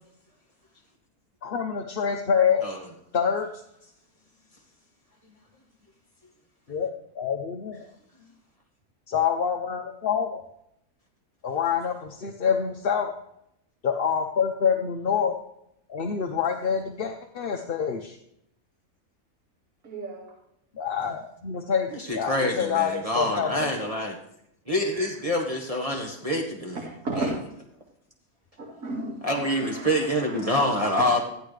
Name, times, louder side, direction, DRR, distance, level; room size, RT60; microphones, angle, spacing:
voice 1, 1.4-2.6 3.1-3.5 6.7-7.8 9.1-10.4 11.4-13.1 13.8-15.3 15.9-18.2 20.8-23.8, left 7 dB, 45° left, 4 dB, 0.9 m, -26 dB
voice 2, 19.8-20.3 24.9-25.1 26.7-27.3 28.6-30.7, right 2 dB, 75° right, -3 dB, 2.5 m, -35 dB
voice 3, 21.9-24.2 24.7-26.8 27.2-27.3 29.2-31.2, equal, 25° right, 0 dB, 1.5 m, -26 dB
14.5 x 11.5 x 3.3 m, 0.76 s
omnidirectional pair, 1.5 m